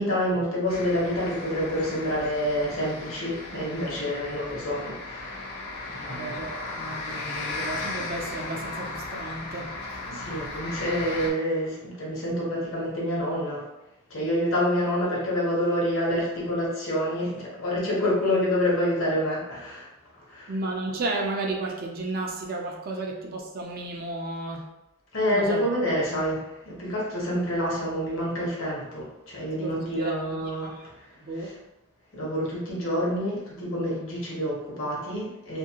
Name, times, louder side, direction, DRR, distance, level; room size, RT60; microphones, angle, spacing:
voice 1, 0.0-5.5 5.9-6.3 10.0-13.6 14.1-19.9 20.3-20.5 25.1-31.1 31.4-31.5 32.1-35.6, equal, 65° left, -5 dB, 1.0 m, -27 dB
sound 1, 0.7-11.3, left 2 dB, 90° left, 0.6 m, -36 dB
voice 2, 6.0-9.8 20.5-24.7 25.3-25.7 29.6-30.9 31.2-31.5, right 2 dB, 45° right, 0 dB, 0.4 m, -33 dB
2.7 x 2.5 x 2.8 m, 0.92 s
head